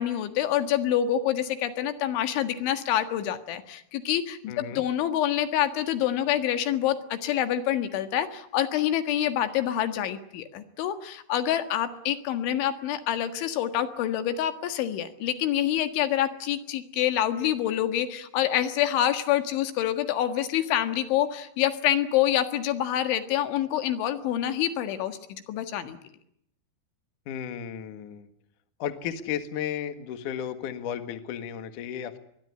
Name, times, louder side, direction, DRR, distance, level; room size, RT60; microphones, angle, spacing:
voice 1, 0.0-26.0, left 11 dB, 80° left, 9 dB, 4.1 m, -27 dB
voice 2, 4.5-4.8 27.3-28.3 28.8-32.2, left 9 dB, 55° left, 9 dB, 2.6 m, -34 dB
23.0 x 21.0 x 9.8 m, 0.74 s
omnidirectional pair, 5.3 m